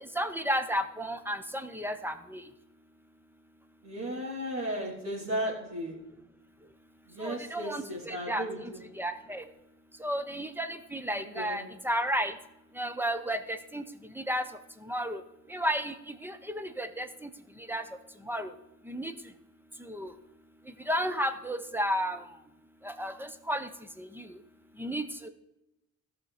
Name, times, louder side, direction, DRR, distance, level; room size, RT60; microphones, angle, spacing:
voice 1, 0.2-2.4 7.2-8.7 9.0-9.4 10.0-12.3 12.8-13.8 14.2-14.4 14.9-15.2 15.5-15.9 16.2-17.3 17.7-17.8 18.3-18.5 18.9-19.1 19.9-20.1 20.9-22.2 22.8-23.7 24.0-24.2 24.8-25.3, equal, 5° right, 9 dB, 1.1 m, -32 dB
voice 2, 3.8-5.9 7.1-8.8 11.3-11.6, equal, 60° right, -5 dB, 3.7 m, -35 dB
14.0 x 5.9 x 5.1 m, 0.91 s
cardioid pair, 90°, 30 cm